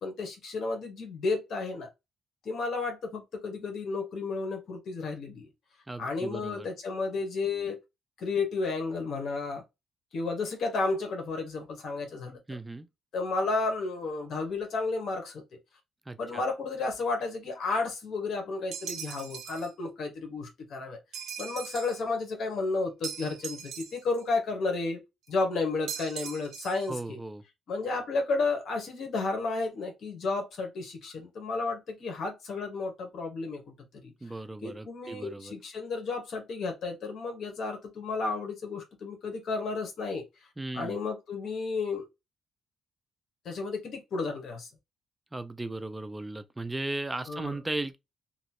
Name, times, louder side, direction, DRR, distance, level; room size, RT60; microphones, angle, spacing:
voice 1, 0.0-1.9 2.4-5.5 6.0-7.8 8.2-9.6 10.1-12.4 13.1-15.4 16.2-21.0 21.4-25.0 25.3-27.2 27.7-33.6 34.0-34.1 34.6-40.2 40.7-42.1 43.4-44.7 47.3-47.5, left 3 dB, 65° left, 1.1 m, -32 dB
voice 2, 5.9-6.7 12.5-12.9 16.1-16.4 26.9-27.4 34.2-35.5 40.6-41.0 45.3-48.0, right 2 dB, 15° right, 0.3 m, -36 dB
sound 1, 18.7-19.7 21.1-22.0 23.0-24.2 25.9-26.9, right 8 dB, 75° right, 0.5 m, -40 dB
2.9 x 2.3 x 2.8 m
cardioid pair, 90°, 0 cm